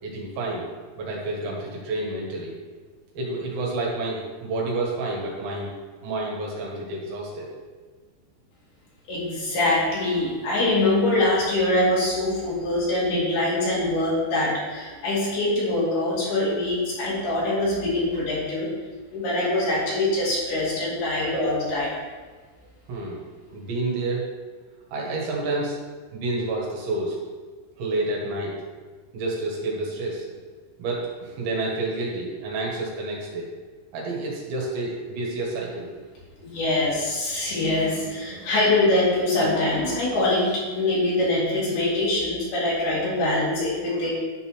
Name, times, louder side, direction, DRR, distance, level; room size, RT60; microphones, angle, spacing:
voice 1, 0.0-0.7 1.0-2.6 3.2-5.7 6.0-7.5 22.9-23.2 23.5-24.3 24.9-25.8 26.1-27.2 27.8-28.8 29.1-30.3 30.8-33.5 33.9-35.9, right 2 dB, 70° right, -3 dB, 3.7 m, -29 dB
voice 2, 9.1-18.7 19.1-22.0 36.4-44.1, left 2 dB, 60° left, -6 dB, 3.7 m, -24 dB
10.5 x 4.1 x 6.2 m, 1.4 s
omnidirectional pair, 5.5 m